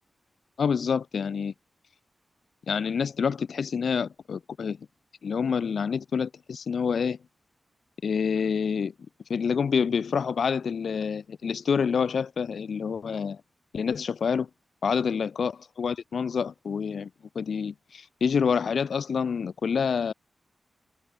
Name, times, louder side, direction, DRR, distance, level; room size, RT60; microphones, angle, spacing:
voice 1, 0.6-1.5 2.7-4.8 5.2-7.2 8.0-8.9 9.3-13.4 13.7-14.5 14.8-17.1 17.3-20.1, left 6 dB, 70° left, 0.7 m, -27 dB
wide cardioid pair, 170°, 0 cm